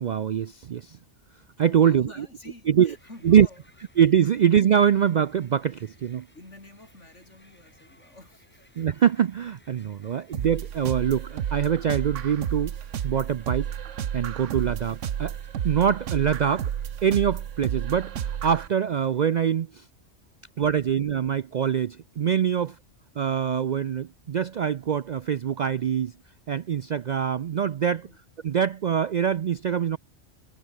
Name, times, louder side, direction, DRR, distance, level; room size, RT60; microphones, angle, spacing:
voice 1, 0.0-1.0 1.6-2.1 2.8-2.9 3.2-3.5 4.0-6.3 8.8-12.7 13.0-13.7 14.1-15.3 15.6-16.7 17.0-18.1 18.4-19.7 20.6-22.7 23.2-26.1 26.5-28.0 28.4-30.0, right 8 dB, 60° right, 0.4 m, -23 dB
voice 2, 1.6-3.7 4.3-4.4 6.3-8.7 10.2-10.3 20.0-21.0 22.5-22.7 27.9-28.2, left 2 dB, 75° left, 5.7 m, -50 dB
Crowd, 2.7-19.4, equal, 10° left, 5.5 m, -61 dB
sound 1, 10.3-18.7, right 9 dB, 85° right, 1.3 m, -31 dB
omnidirectional pair, 1.2 m